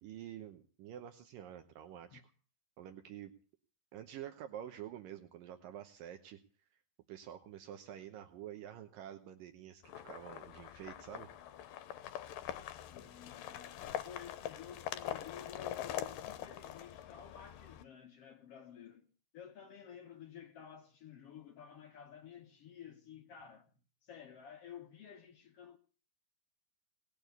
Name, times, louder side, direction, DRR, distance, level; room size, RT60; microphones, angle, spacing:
voice 1, 0.0-2.2 2.8-3.3 3.9-6.4 7.1-11.3, right 11 dB, 75° right, 2.6 m, -48 dB
sound 1, 9.8-17.8, left 11 dB, 75° left, 2.5 m, -44 dB
voice 2, 12.9-19.1 19.3-23.7 24.0-25.8, left 8 dB, 60° left, 1.7 m, -52 dB
19.0 x 7.0 x 9.4 m
omnidirectional pair, 4.1 m